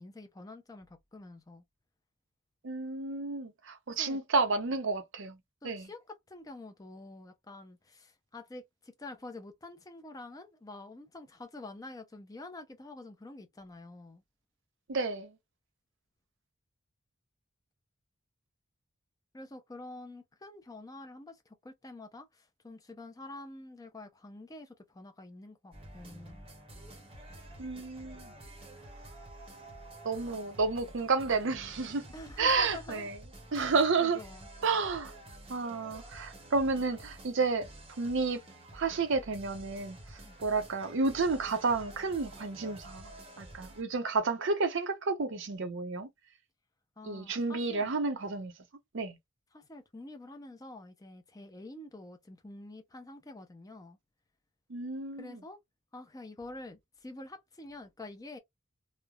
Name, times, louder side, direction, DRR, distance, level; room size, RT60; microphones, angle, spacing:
voice 1, 0.0-1.6 3.9-4.2 5.6-14.2 19.3-26.4 32.1-33.1 34.0-34.5 40.2-40.4 47.0-47.9 49.5-54.0 55.2-55.6 55.9-58.4, left 2 dB, 15° left, 0.5 m, -47 dB
voice 2, 2.6-5.4 5.6-5.9 14.9-15.3 27.6-28.3 30.0-32.0 32.4-33.1 33.5-34.2 34.6-35.1 35.5-37.7 38.0-38.4 38.7-40.0 40.4-43.1 43.4-46.1 47.0-48.5 48.9-49.1 54.7-55.4, right 4 dB, 55° right, 0.6 m, -31 dB
sound 1, 25.7-43.8, right 1 dB, 25° right, 0.8 m, -50 dB
3.1 x 2.0 x 2.3 m
head